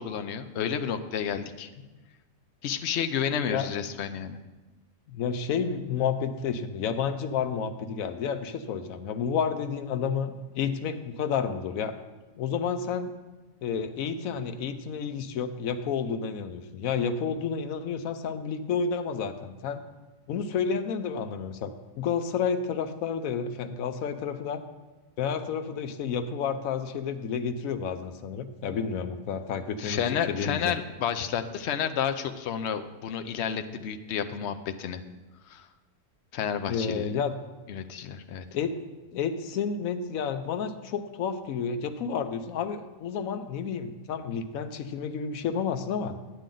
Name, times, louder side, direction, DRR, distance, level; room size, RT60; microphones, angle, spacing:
voice 1, 0.0-1.7 2.6-4.4 29.8-35.0 35.5-35.6 36.3-37.0 37.7-38.4, left 8 dB, 60° left, 8 dB, 0.8 m, -31 dB
voice 2, 5.1-11.9 12.4-13.1 13.6-19.8 20.3-21.7 22.0-24.6 25.2-30.8 36.7-37.4 38.5-38.8 39.1-46.2, left 6 dB, 85° left, 9 dB, 1.1 m, -30 dB
10.0 x 9.1 x 3.8 m, 1.2 s
omnidirectional pair, 1.4 m